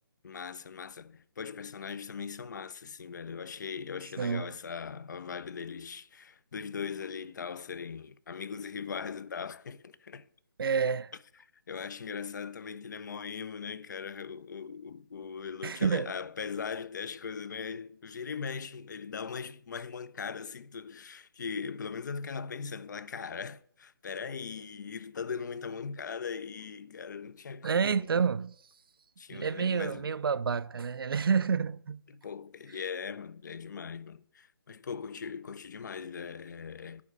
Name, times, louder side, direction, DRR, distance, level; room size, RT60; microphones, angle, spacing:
voice 1, 0.2-10.3 11.7-28.2 29.2-30.1 32.1-37.0, left 6 dB, 50° left, 0.5 m, -40 dB
voice 2, 10.6-11.1 15.6-16.1 27.6-28.5 29.3-32.0, right 6 dB, 70° right, 0.4 m, -29 dB
9.5 x 3.6 x 6.7 m
figure-of-eight pair, 155°, 13 cm